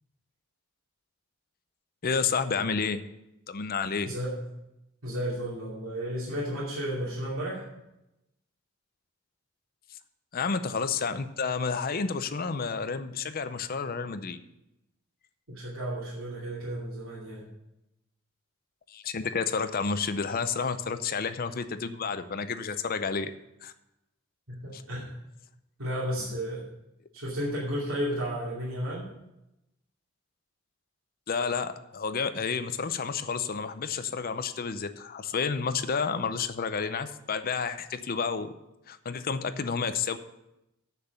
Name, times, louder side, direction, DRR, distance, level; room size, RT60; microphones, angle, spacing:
voice 1, 2.0-3.0 3.5-4.1 9.9-10.0 10.3-14.4 18.9-23.3 23.6-23.7 24.7-24.8 31.3-38.5 38.9-40.2, left 5 dB, 45° left, 11 dB, 0.6 m, -30 dB
voice 2, 4.0-4.4 5.0-7.6 15.5-17.4 24.6-25.1 25.8-26.6 27.1-29.1, equal, 85° right, -8 dB, 2.7 m, -33 dB
7.6 x 6.7 x 8.0 m, 0.88 s
head